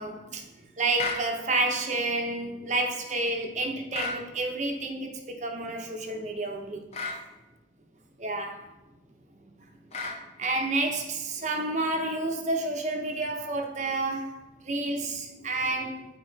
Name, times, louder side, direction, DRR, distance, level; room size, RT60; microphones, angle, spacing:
voice 1, 0.0-6.9 8.2-8.7 10.4-16.0, right 2 dB, 40° right, 3 dB, 0.9 m, -30 dB
sound 1, 1.0-1.3 3.9-4.2 6.9-7.2 9.9-10.2, left 3 dB, 35° left, 1.0 m, -32 dB
9.3 x 4.4 x 4.0 m, 1.0 s
head